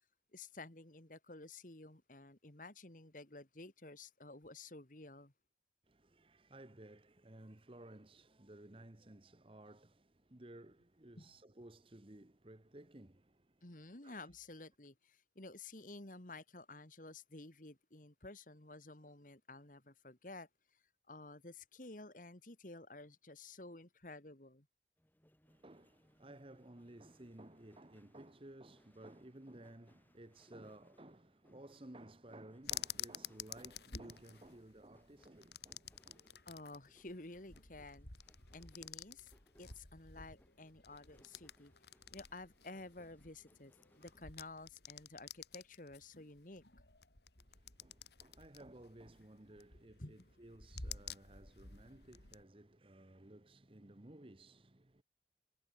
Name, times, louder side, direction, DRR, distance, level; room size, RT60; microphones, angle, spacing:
voice 1, 0.3-5.3 11.2-11.3 13.6-20.5 21.1-24.7 36.5-38.1 38.5-39.3 39.6-41.7 42.1-46.6 50.0-50.2, left 2 dB, 50° left, 2.2 m, -52 dB
voice 2, 5.9-13.6 13.9-14.3 25.5-36.5 47.4-55.0, right 1 dB, 30° right, 1.1 m, -57 dB
sound 1, 25.0-44.3, equal, 10° left, 5.3 m, -72 dB
sound 2, 32.6-52.4, left 8 dB, 70° left, 3.8 m, -51 dB
head